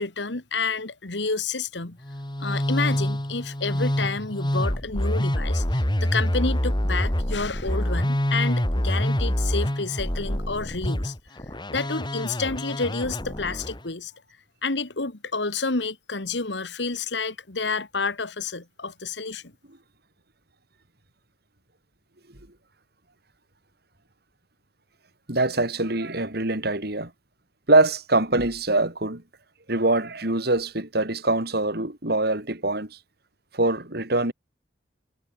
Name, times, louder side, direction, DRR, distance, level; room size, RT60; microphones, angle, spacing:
voice 1, 0.0-2.0 2.4-11.1 11.7-14.1 14.6-19.5, left 4 dB, 75° left, 2.0 m, -29 dB
Musical instrument, 2.0-13.8, equal, 25° left, 2.7 m, -26 dB
voice 2, 25.3-27.1 27.7-29.2 29.7-33.0 33.5-34.3, right 2 dB, 60° right, 4.6 m, -23 dB
head